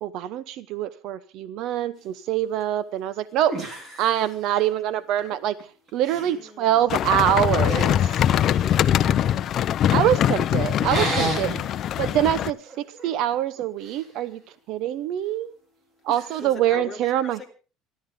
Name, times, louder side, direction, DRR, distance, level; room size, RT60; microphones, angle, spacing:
voice 1, 0.0-3.6 4.0-5.6 5.9-8.1 9.9-11.5 12.0-14.4 14.7-15.5 16.0-17.4, right 11 dB, 55° right, 16 dB, 0.8 m, -24 dB
sound 1, 2.8-2.9 3.5-4.8 5.2-5.6 5.9-6.4 7.7-8.9 10.8-11.6 12.1-12.3 12.6-14.1 16.1-16.5, right 1 dB, 30° right, 4.2 m, -32 dB
voice 2, 6.1-6.9 8.6-9.6 11.5-11.8 16.4-17.3, left 4 dB, 5° left, -2 dB, 3.2 m, -40 dB
sound 2, 6.9-12.5, left 10 dB, 35° left, 0.6 m, -22 dB
28.0 x 11.5 x 3.7 m, 0.37 s
cardioid pair, 170°, 0 cm